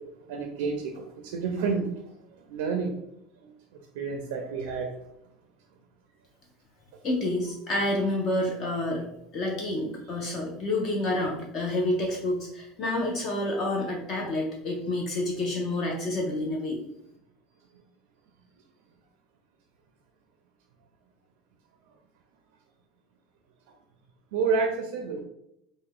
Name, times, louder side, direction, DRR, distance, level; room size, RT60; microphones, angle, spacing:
voice 1, 0.3-1.9 2.5-2.9 4.0-4.9 24.3-25.2, right 5 dB, 85° right, 3 dB, 0.4 m, -29 dB
voice 2, 7.0-9.0 9.3-16.8, left 1 dB, 30° left, 0 dB, 0.5 m, -28 dB
3.3 x 2.1 x 3.5 m, 0.80 s
cardioid pair, 180°, 0 cm